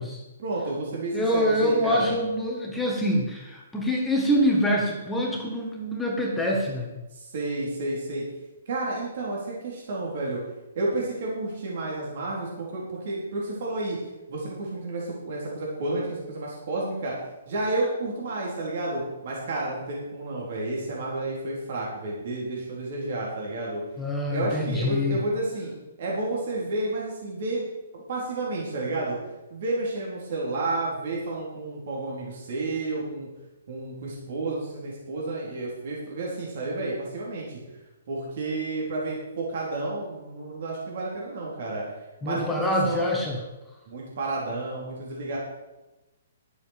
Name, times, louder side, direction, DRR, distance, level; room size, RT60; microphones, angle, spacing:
voice 1, 0.4-2.1 7.1-8.2 8.7-10.4 10.8-14.0 14.3-17.1 17.5-23.8 24.3-25.7 26.0-27.7 27.9-29.2 29.5-33.3 33.7-37.6 38.1-41.8 42.2-43.1 43.9-45.4, right 2 dB, 55° right, -4 dB, 4.1 m, -31 dB
voice 2, 1.1-7.0 24.0-25.2 42.2-43.4, equal, 5° left, -2 dB, 1.7 m, -25 dB
11.0 x 8.2 x 6.8 m, 1.0 s
hypercardioid pair, 155°, 0 cm